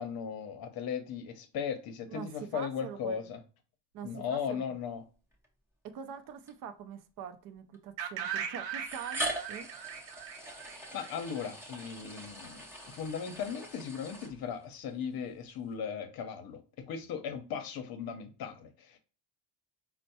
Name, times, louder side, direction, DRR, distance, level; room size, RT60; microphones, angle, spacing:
voice 1, 0.0-3.4 4.0-5.0 10.9-19.0, left 7 dB, 55° left, 0.7 m, -37 dB
voice 2, 2.1-3.3 3.9-4.6 5.8-9.7, right 7 dB, 50° right, 0.5 m, -44 dB
sound 1, 5.3-5.4 6.5-6.6 7.7-7.8 8.8-14.8, right 1 dB, 5° right, 0.6 m, -42 dB
sound 2, 8.0-11.9, right 8 dB, 90° right, 0.7 m, -39 dB
4.3 x 2.1 x 2.7 m
cardioid pair, 140°, 42 cm